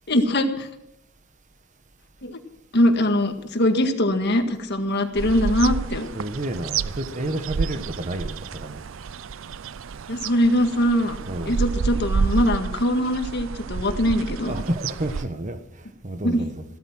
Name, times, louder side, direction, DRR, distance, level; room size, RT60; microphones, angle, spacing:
voice 1, 0.1-0.7 2.2-2.4 2.7-6.1 10.1-11.2 11.5-14.6 16.2-16.5, left 1 dB, 55° left, 1.8 m, -22 dB
sound 1, 5.2-15.2, right 5 dB, 70° right, 0.5 m, -29 dB
voice 2, 6.1-8.8 11.3-11.6 14.4-16.6, right 1 dB, 40° right, 1.3 m, -30 dB
16.0 x 13.5 x 6.1 m
head